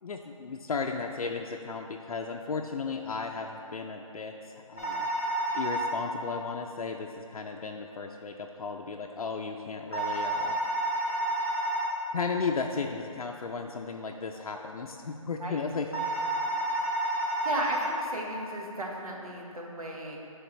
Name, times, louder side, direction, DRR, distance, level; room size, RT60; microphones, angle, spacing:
voice 1, 0.0-5.1 5.5-10.6 12.1-15.9, left 4 dB, 85° left, 2 dB, 0.4 m, -35 dB
sound 1, 4.8-5.9 9.9-11.9 15.9-17.9, right 1 dB, 25° left, 0.5 m, -30 dB
voice 2, 17.4-20.2, right 1 dB, 90° right, -1 dB, 1.2 m, -35 dB
10.5 x 3.5 x 3.0 m, 2.6 s
hypercardioid pair, 175°, 18 cm